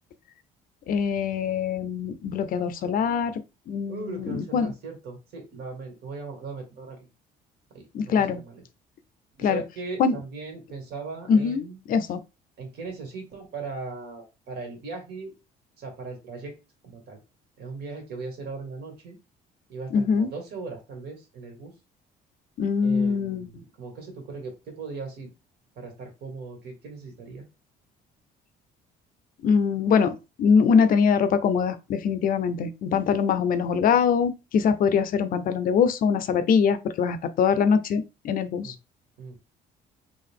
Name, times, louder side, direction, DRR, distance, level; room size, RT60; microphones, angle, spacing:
voice 1, 0.9-3.4 3.7-4.7 7.9-8.4 9.4-9.6 10.0-10.1 11.3-11.6 11.9-12.2 19.9-20.3 22.6-23.5 29.4-38.7, left 6 dB, 55° left, 0.5 m, -23 dB
voice 2, 3.9-7.0 7.7-8.6 9.4-11.8 12.6-15.3 15.8-16.6 16.8-17.2 17.6-19.2 19.7-21.7 22.8-25.3 25.8-27.5 38.6-38.7 39.2-39.4, right 4 dB, 70° right, 1.9 m, -38 dB
3.7 x 2.5 x 3.5 m
cardioid pair, 110°, 17 cm